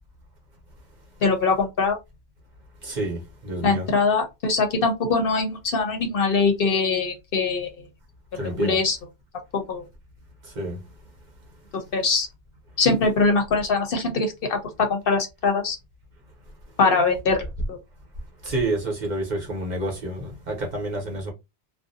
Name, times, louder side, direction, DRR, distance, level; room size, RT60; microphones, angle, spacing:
voice 1, 1.2-2.0 3.6-7.7 8.6-9.0 9.7-9.8 11.9-12.3 12.8-14.6 14.9-15.8 16.8-17.4 17.7-17.8, left 4 dB, 60° left, 0.8 m, -22 dB
voice 2, 2.8-3.9 8.3-8.8 10.6-10.8 18.4-21.3, right 1 dB, 45° right, 0.8 m, -28 dB
2.5 x 2.0 x 2.6 m
omnidirectional pair, 1.1 m